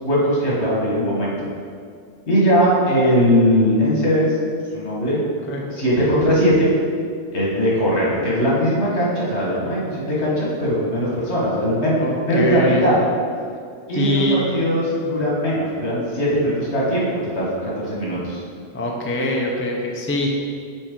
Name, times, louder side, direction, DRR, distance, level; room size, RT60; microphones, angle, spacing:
voice 1, 0.0-1.3 2.3-4.3 4.7-5.2 5.7-6.7 7.3-13.0 13.9-14.2 14.5-18.4, equal, 75° left, -6 dB, 1.8 m, -20 dB
voice 2, 12.0-12.8 13.9-14.4 18.7-20.3, left 1 dB, 15° left, -1 dB, 0.4 m, -23 dB
6.2 x 4.4 x 3.7 m, 2.2 s
omnidirectional pair, 1.1 m